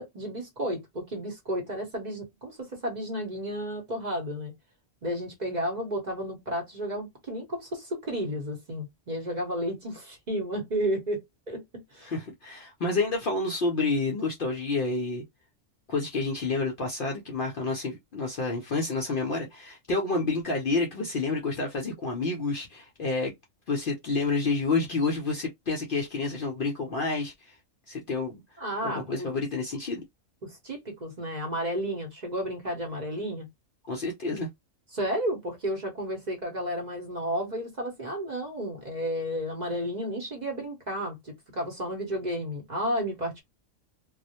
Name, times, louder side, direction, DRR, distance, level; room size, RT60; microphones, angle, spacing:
voice 1, 0.0-4.5 5.0-12.1 28.6-29.4 30.4-33.5 34.9-43.4, equal, 40° right, 0.7 m, -32 dB
voice 2, 12.0-15.2 15.9-23.3 23.7-27.5 27.9-28.4 28.8-30.0 33.9-34.5, left 3 dB, 60° left, 0.6 m, -29 dB
2.3 x 2.0 x 2.7 m
omnidirectional pair, 1.3 m